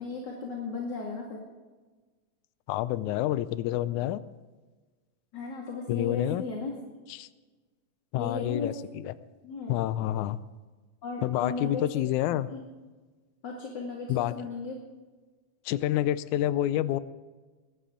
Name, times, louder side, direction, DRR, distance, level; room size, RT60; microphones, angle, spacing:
voice 1, 0.0-1.4 5.3-6.7 8.1-8.7 9.4-9.7 11.0-11.8 12.5-12.6 13.4-14.8, left 4 dB, 35° left, -1 dB, 2.4 m, -35 dB
voice 2, 2.7-4.2 5.9-6.4 7.1-7.3 8.1-9.1 9.7-10.4 11.2-12.5 14.1-14.3 15.7-17.0, left 13 dB, 75° left, 15 dB, 1.9 m, -28 dB
21.5 x 17.5 x 3.8 m, 1.3 s
omnidirectional pair, 3.8 m